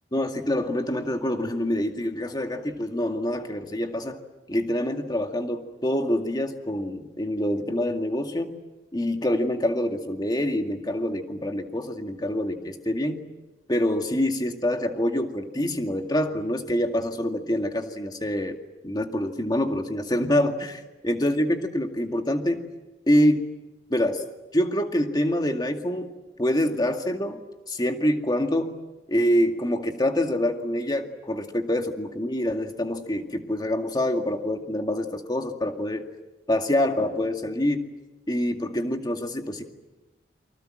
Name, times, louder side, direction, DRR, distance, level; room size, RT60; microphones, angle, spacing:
voice 1, 0.1-4.2 4.5-8.6 8.9-13.2 13.7-18.6 18.8-22.7 23.1-23.5 23.9-24.2 24.5-26.1 26.4-27.4 27.7-28.8 29.1-36.1 36.5-37.8 38.3-39.6, left 1 dB, 25° left, 5 dB, 2.2 m, -26 dB
29.5 x 25.0 x 7.8 m, 1.1 s
head